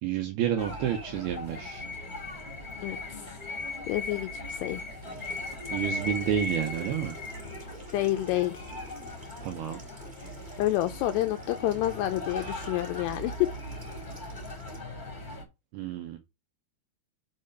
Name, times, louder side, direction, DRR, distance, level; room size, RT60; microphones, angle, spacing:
voice 1, 0.0-1.8 5.7-7.2 9.4-9.8 15.7-16.2, right 10 dB, 80° right, 2.3 m, -30 dB
sound 1, 0.6-15.4, left 2 dB, 20° left, 1.2 m, -38 dB
voice 2, 2.8-3.4 3.9-4.8 7.9-8.7 10.6-13.5, left 15 dB, 90° left, 2.4 m, -29 dB
Water tap faucet / Sink (filling or washing), 5.0-14.8, right 1 dB, 15° right, 1.9 m, -51 dB
6.5 x 4.9 x 5.4 m
omnidirectional pair, 5.5 m